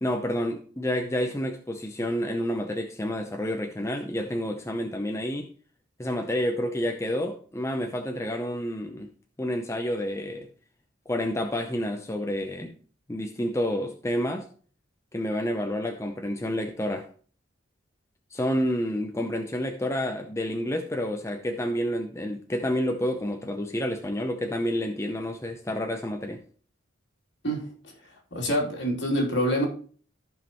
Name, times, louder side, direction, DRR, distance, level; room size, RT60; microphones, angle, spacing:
voice 1, 0.0-5.5 6.0-9.1 9.4-10.5 11.1-12.7 13.1-14.5 15.1-17.1 18.3-26.4, left 1 dB, 15° left, 0.6 m, -29 dB
voice 2, 28.3-29.7, equal, 65° left, 3.0 m, -25 dB
14.5 x 5.3 x 3.0 m
head